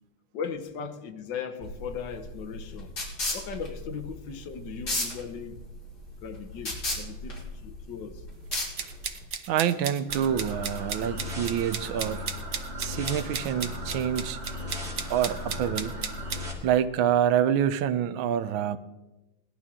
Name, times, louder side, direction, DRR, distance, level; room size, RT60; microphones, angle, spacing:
voice 1, 0.3-2.9 3.3-5.6 6.2-8.2, left 6 dB, 70° left, 1.5 m, -38 dB
sound 1, 1.6-9.2, left 2 dB, 55° left, 3.7 m, -35 dB
sound 2, 8.5-16.4, right 6 dB, 50° right, 0.9 m, -35 dB
voice 2, 9.5-12.3 12.8-14.4 15.1-16.1 16.6-18.8, right 9 dB, 85° right, 1.5 m, -27 dB
sound 3, 10.1-16.5, left 1 dB, 35° right, 2.8 m, -37 dB
18.5 x 12.0 x 3.7 m
omnidirectional pair, 2.1 m